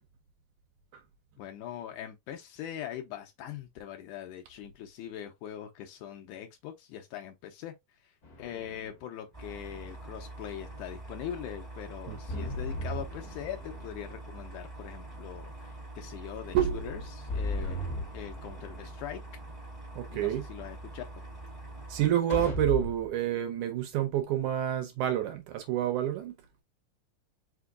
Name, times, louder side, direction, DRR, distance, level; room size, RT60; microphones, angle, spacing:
voice 1, 1.4-7.7 8.0-8.1 8.4-19.2 20.1-21.1, left 10 dB, 80° left, 2.1 m, -42 dB
sound 1, 8.2-9.0 12.3-14.0 17.3-19.0 22.3-23.2, left 1 dB, 55° left, 1.0 m, -36 dB
sound 2, 9.3-22.1, right 2 dB, 25° right, 0.7 m, -44 dB
voice 2, 12.1-12.6 16.5-16.9 20.0-20.5 21.9-26.3, right 11 dB, 75° right, 2.0 m, -29 dB
5.1 x 3.8 x 2.3 m
omnidirectional pair, 3.8 m